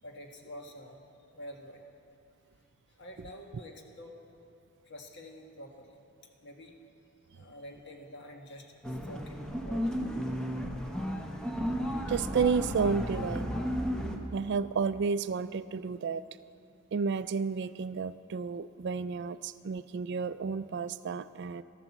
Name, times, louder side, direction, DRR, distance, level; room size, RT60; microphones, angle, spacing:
voice 1, 0.0-1.0 1.3-1.8 3.0-4.2 4.9-6.0 6.4-6.7 7.3-10.0, left 1 dB, 50° left, 2 dB, 1.5 m, -48 dB
sound 1, 8.8-14.2, equal, 5° left, 0.9 m, -33 dB
voice 2, 12.1-13.5 14.3-16.2 16.9-21.6, right 5 dB, 50° right, 14 dB, 0.3 m, -31 dB
13.5 x 12.5 x 7.1 m, 2.6 s
head